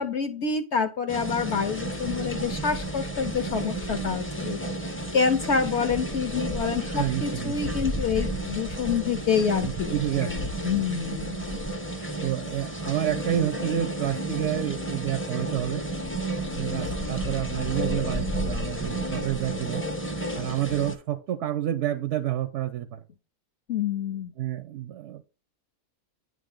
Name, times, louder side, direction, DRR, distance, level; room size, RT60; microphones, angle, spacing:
voice 1, 0.0-4.6 5.1-11.6 23.7-24.3, left 6 dB, 60° left, 7 dB, 0.7 m, -27 dB
sound 1, 1.1-20.9, right 1 dB, 15° left, 0.5 m, -32 dB
voice 2, 6.9-7.7 9.4-10.5 12.2-15.8 16.5-19.8 20.3-23.0 24.4-25.2, right 12 dB, 65° right, 11 dB, 0.7 m, -29 dB
9.4 x 3.3 x 3.7 m, 0.35 s
omnidirectional pair, 1.7 m